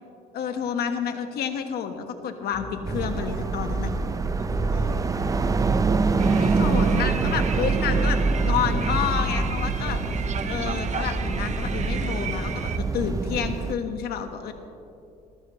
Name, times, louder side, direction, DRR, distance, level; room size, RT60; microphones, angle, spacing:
voice 1, 0.3-3.9 6.3-10.0 10.4-14.5, left 7 dB, 70° left, 7 dB, 1.3 m, -29 dB
sound 1, 2.5-12.6, left 1 dB, 20° left, 1.3 m, -37 dB
sound 2, 2.9-13.7, right 4 dB, 20° right, 0.5 m, -25 dB
voice 2, 3.9-5.4 9.7-9.9, right 4 dB, 60° right, 0 dB, 2.6 m, -47 dB
sound 3, 6.2-12.8, right 6 dB, 45° right, 0.9 m, -35 dB
20.5 x 14.0 x 3.1 m, 2.6 s
cardioid pair, 110°, 17 cm